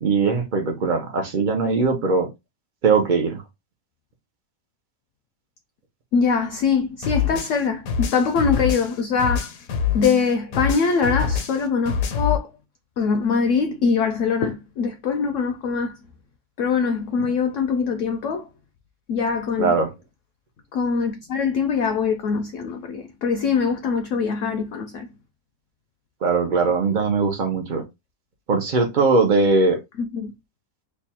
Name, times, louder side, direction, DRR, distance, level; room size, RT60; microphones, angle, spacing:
voice 1, 0.0-2.3 2.8-3.4 19.6-19.9 26.2-27.8 28.5-29.8, right 4 dB, 85° right, 0.4 m, -20 dB
voice 2, 6.1-9.5 9.9-12.5 13.0-16.0 16.6-18.5 19.1-19.7 20.7-25.1 30.0-30.3, left 5 dB, 70° left, 0.7 m, -23 dB
sound 1, 7.0-10.3 10.5-12.4, left 7 dB, 90° left, 1.3 m, -25 dB
3.3 x 2.1 x 4.1 m
omnidirectional pair, 1.7 m